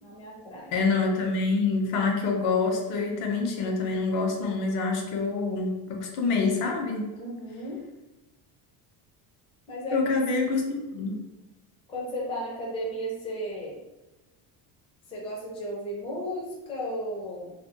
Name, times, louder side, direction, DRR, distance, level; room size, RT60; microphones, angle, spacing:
voice 1, 0.0-0.7 7.1-7.8 9.7-10.1 11.9-13.8 15.1-17.5, equal, 15° left, -4 dB, 0.4 m, -34 dB
voice 2, 0.7-7.1 9.9-11.2, left 4 dB, 80° left, 2 dB, 0.8 m, -26 dB
2.5 x 2.5 x 2.7 m, 1.1 s
cardioid pair, 165°, 46 cm